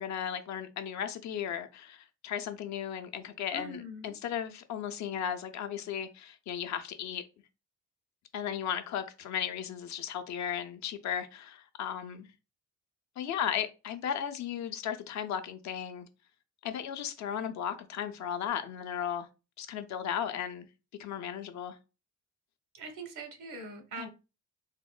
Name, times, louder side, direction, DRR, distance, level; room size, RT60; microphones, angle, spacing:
voice 1, 0.0-7.2 8.3-12.3 13.2-16.1 16.6-19.3 19.6-20.7 21.0-21.8 24.0-24.1, left 9 dB, 70° left, 0.5 m, -35 dB
voice 2, 3.5-4.2 22.7-24.1, right 2 dB, 75° right, 0.9 m, -42 dB
3.5 x 2.1 x 2.2 m
cardioid pair, 90°, 30 cm